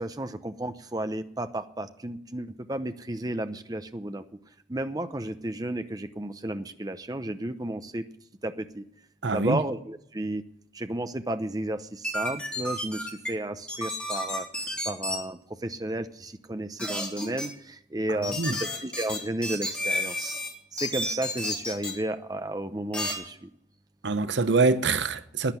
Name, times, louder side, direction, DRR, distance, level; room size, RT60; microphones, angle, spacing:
voice 1, 0.0-4.2 4.7-8.0 8.4-8.8 9.3-10.4 10.7-14.5 14.9-20.4 20.7-23.5, right 1 dB, 20° right, 0.7 m, -33 dB
voice 2, 9.2-9.6 18.4-18.5 24.0-25.5, right 3 dB, 75° right, 0.9 m, -24 dB
sound 1, 12.0-13.3 13.7-15.2 16.8-17.5 18.2-20.5 20.8-21.9 22.9-23.1, left 1 dB, 5° left, 3.4 m, -31 dB
11.5 x 10.0 x 9.1 m
head